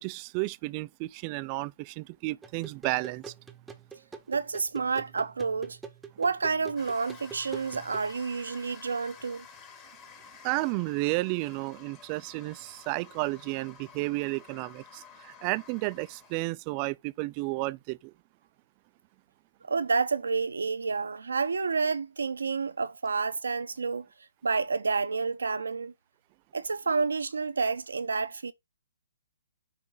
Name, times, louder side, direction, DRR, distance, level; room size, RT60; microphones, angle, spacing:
voice 1, 0.0-3.3 10.4-18.1, right 22 dB, 30° right, 0.4 m, -32 dB
sound 1, 2.4-8.1, right 6 dB, 5° right, 0.8 m, -46 dB
voice 2, 4.3-5.8 6.2-9.4 19.6-24.1 24.4-25.9 26.5-28.5, right 4 dB, 80° right, 0.7 m, -29 dB
sound 2, 6.8-16.4, left 6 dB, 25° left, 1.4 m, -52 dB
5.7 x 4.5 x 3.8 m
hypercardioid pair, 135°, 0 cm